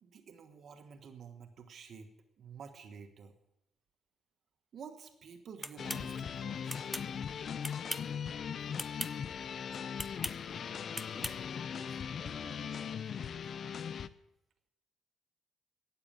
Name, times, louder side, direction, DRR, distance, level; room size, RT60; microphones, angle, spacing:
voice 1, 0.0-2.1 2.4-3.3 4.7-6.8 8.6-8.7, right 6 dB, 60° right, 1.3 m, -50 dB
sound 1, 5.6-6.0 6.7-7.1 7.6-8.1 8.7-9.1 10.0-10.4 10.9-11.4, equal, ahead, 0.5 m, -39 dB
sound 2, 5.8-14.1, left 7 dB, 55° left, 0.5 m, -39 dB
voice 2, 10.3-14.0, right 2 dB, 15° right, 2.3 m, -58 dB
12.5 x 8.7 x 8.6 m
cardioid pair, 90°, 0 cm